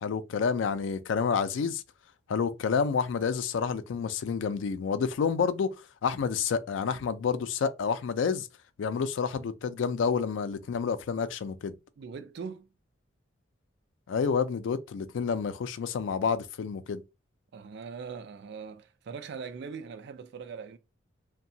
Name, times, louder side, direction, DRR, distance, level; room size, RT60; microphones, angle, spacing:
voice 1, 0.0-1.8 2.3-5.8 6.0-8.5 8.8-11.8 14.1-17.0, left 6 dB, 75° left, 0.3 m, -29 dB
voice 2, 12.0-12.7 17.5-20.8, right 5 dB, 65° right, 0.4 m, -41 dB
2.7 x 2.2 x 2.6 m
head